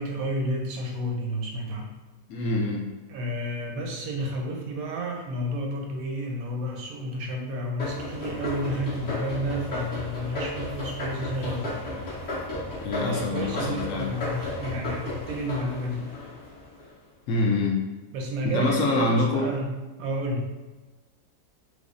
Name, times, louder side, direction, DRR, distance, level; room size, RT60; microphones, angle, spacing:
voice 1, 0.0-1.9 3.1-11.7 13.0-16.2 18.1-20.5, equal, 70° right, 1 dB, 0.9 m, -31 dB
voice 2, 2.3-2.9 12.8-14.1 17.3-17.8 18.4-19.5, left 2 dB, 70° left, -1 dB, 0.8 m, -25 dB
sound 1, 7.8-16.9, left 1 dB, 50° left, 1.5 m, -34 dB
4.7 x 2.0 x 2.5 m, 1.2 s
omnidirectional pair, 1.8 m